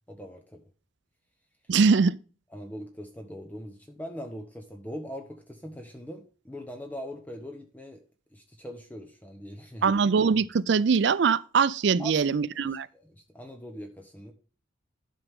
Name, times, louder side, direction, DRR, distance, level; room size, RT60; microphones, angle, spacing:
voice 1, 0.1-0.6 2.5-8.0 8.3-10.0 12.0-12.4 12.9-14.3, equal, 10° left, 0.9 m, -41 dB
voice 2, 1.7-2.2 9.8-12.9, right 5 dB, 60° right, 0.4 m, -22 dB
11.5 x 6.0 x 3.6 m
head